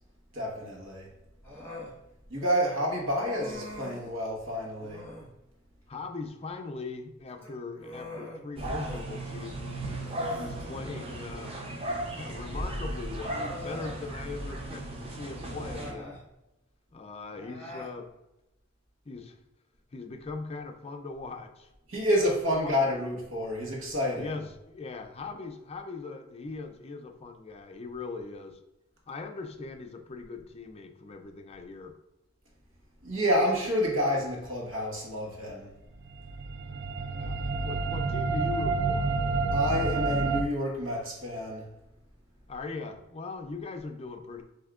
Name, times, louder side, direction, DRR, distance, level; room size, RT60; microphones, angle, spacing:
voice 1, 0.3-1.1 2.3-5.1 21.9-24.4 33.0-35.7 39.5-41.7, equal, 80° right, -2 dB, 1.3 m, -29 dB
Human voice, 1.4-2.0 3.2-4.1 4.8-5.3 7.3-9.0 9.4-9.5 10.0-11.2 12.4-12.5 13.2-14.0 15.4-16.2 17.3-17.9, left 1 dB, 10° left, 1.5 m, -43 dB
voice 2, 5.9-9.8 10.3-11.5 12.1-16.2 16.9-18.1 19.1-19.4 19.9-21.7 22.5-22.8 24.2-28.6 29.1-31.9 37.1-39.1 42.5-44.4, left 3 dB, 30° left, 5 dB, 0.4 m, -40 dB
sound 1, 8.6-15.9, right 1 dB, 30° right, 0.7 m, -36 dB
sound 2, 36.1-40.4, right 3 dB, 60° right, 0.3 m, -29 dB
7.8 x 2.8 x 2.4 m, 0.93 s
head